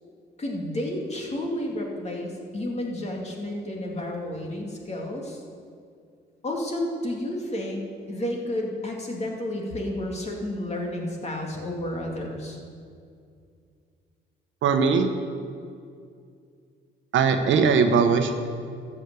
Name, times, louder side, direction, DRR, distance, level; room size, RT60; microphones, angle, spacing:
voice 1, 0.4-5.4 6.4-12.6, left 1 dB, 35° left, 0 dB, 2.5 m, -31 dB
voice 2, 14.6-15.1 17.1-18.3, right 5 dB, 75° right, 6 dB, 1.2 m, -20 dB
13.0 x 6.4 x 8.5 m, 2.3 s
cardioid pair, 90°, 20 cm